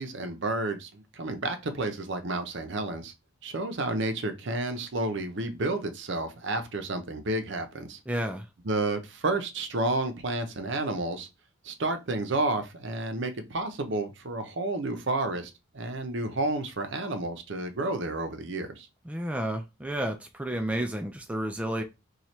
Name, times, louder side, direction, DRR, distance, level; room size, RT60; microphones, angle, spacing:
voice 1, 0.0-3.1 3.4-8.0 8.6-11.3 11.6-18.9, right 2 dB, 60° right, 0.6 m, -31 dB
voice 2, 8.1-8.5 19.1-21.8, right 1 dB, 5° right, 0.3 m, -31 dB
3.1 x 2.3 x 4.2 m
head